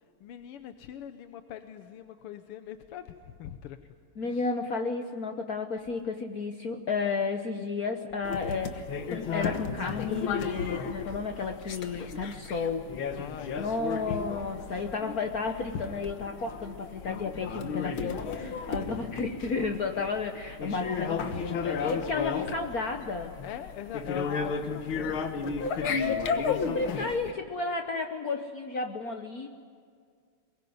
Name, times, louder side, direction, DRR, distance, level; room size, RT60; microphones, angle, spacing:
voice 1, 0.2-3.8 4.2-4.5 13.1-14.0 18.9-19.2 21.8-22.2 22.5-22.7 23.4-26.0, left 9 dB, 90° left, 8 dB, 1.8 m, -43 dB
voice 2, 4.2-12.9 13.6-23.3 25.6-29.5, left 4 dB, 50° left, 5 dB, 1.3 m, -32 dB
sound 1, 8.2-27.3, left 5 dB, 70° left, 2.1 m, -34 dB
23.0 x 21.5 x 9.5 m, 2.1 s
omnidirectional pair, 2.4 m